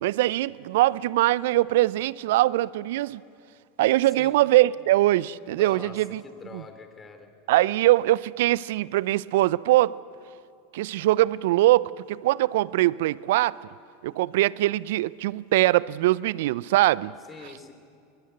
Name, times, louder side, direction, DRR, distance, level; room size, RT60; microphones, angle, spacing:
voice 1, 0.0-3.2 3.8-6.2 6.5-6.6 7.5-10.0 10.7-13.6 14.0-17.1, right 16 dB, 65° right, 0.5 m, -22 dB
voice 2, 5.5-6.0 6.2-7.3 17.3-17.7, left 4 dB, 25° left, 3.4 m, -43 dB
22.0 x 21.0 x 7.9 m
hypercardioid pair, 90°, 0 cm